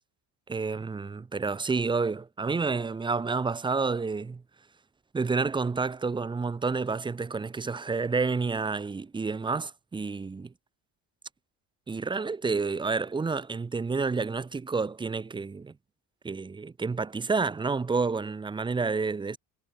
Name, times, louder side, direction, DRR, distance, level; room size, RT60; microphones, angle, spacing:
voice 1, 0.5-4.4 5.1-10.5 11.9-15.7 16.2-19.4, right 4 dB, 15° right, 0.5 m, -29 dB
cardioid pair, 110°, 38 cm